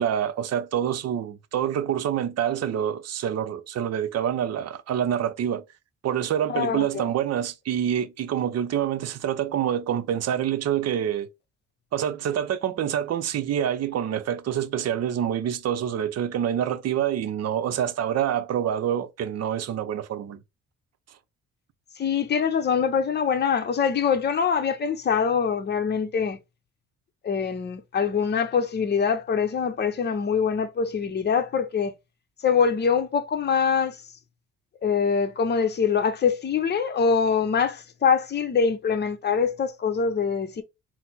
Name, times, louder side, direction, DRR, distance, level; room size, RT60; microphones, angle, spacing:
voice 1, 0.0-5.6 6.0-11.3 11.9-20.4, right 9 dB, 55° right, 0.6 m, -26 dB
voice 2, 6.5-7.0 22.0-26.4 27.2-31.9 32.4-34.0 34.8-40.6, left 6 dB, 35° left, 0.7 m, -24 dB
4.2 x 2.1 x 4.0 m
cardioid pair, 90°, 30 cm